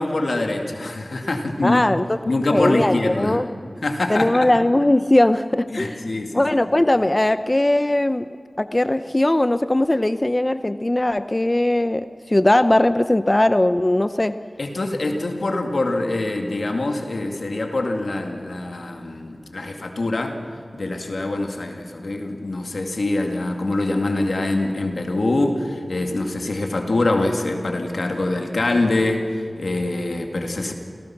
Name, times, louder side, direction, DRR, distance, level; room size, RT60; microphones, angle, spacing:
voice 1, 0.0-1.8 2.3-3.4 3.8-4.5 5.7-6.4 14.6-20.4 20.7-29.3 29.6-30.7, left 2 dB, 85° left, 3 dB, 2.2 m, -24 dB
voice 2, 1.6-2.2 2.5-3.5 4.1-6.0 6.3-8.3 8.6-14.3, left 1 dB, 30° left, 11 dB, 0.6 m, -19 dB
28.0 x 17.5 x 6.0 m, 2.2 s
wide cardioid pair, 45°, 0 cm